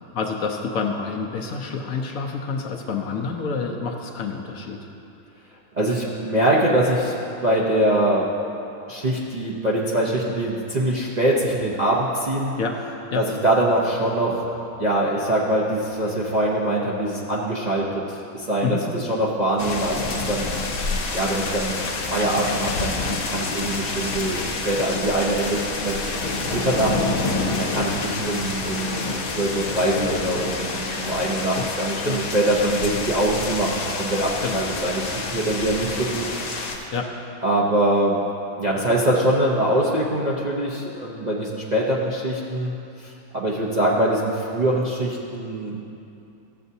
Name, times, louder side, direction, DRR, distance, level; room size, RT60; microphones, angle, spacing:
voice 1, 0.1-4.8 12.6-12.8 13.1-13.2 18.6-18.8 31.6-31.7 32.0-32.2 34.4-34.6 36.9-37.1, left 5 dB, 65° left, 2 dB, 1.0 m, -28 dB
voice 2, 5.7-7.1 7.4-8.3 8.9-12.5 13.1-14.5 14.8-20.5 20.7-26.0 26.5-26.9 27.6-36.3 36.7-36.9 37.4-38.2 38.6-42.7 43.0-45.8, right 1 dB, 40° right, -6 dB, 0.6 m, -23 dB
sound 1, 19.6-36.8, left 3 dB, 85° left, 1.5 m, -28 dB
14.0 x 7.7 x 2.7 m, 2.7 s
omnidirectional pair, 1.7 m